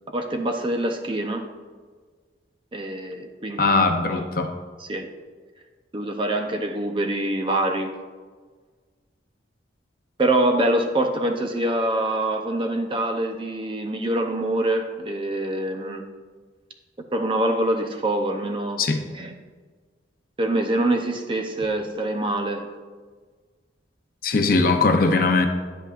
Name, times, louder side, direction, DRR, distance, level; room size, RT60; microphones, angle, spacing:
voice 1, 0.1-1.5 2.7-3.8 4.1-4.2 4.8-5.1 5.9-7.9 10.2-16.0 17.1-19.3 20.4-22.7, right 1 dB, 25° right, 4 dB, 0.5 m, -25 dB
voice 2, 3.6-4.5 18.8-19.0 24.2-25.5, left 3 dB, 50° left, 5 dB, 0.6 m, -20 dB
9.9 x 8.0 x 2.4 m, 1.5 s
head